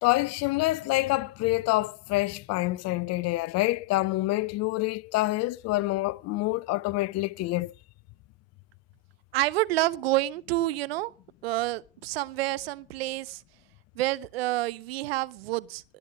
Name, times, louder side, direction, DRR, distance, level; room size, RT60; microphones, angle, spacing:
voice 1, 0.0-7.7, left 19 dB, 55° left, 0.6 m, -27 dB
voice 2, 9.3-11.1 11.4-13.4 14.0-15.8, right 17 dB, 75° right, 0.6 m, -28 dB
18.5 x 8.3 x 6.2 m
hypercardioid pair, 60°, 30 cm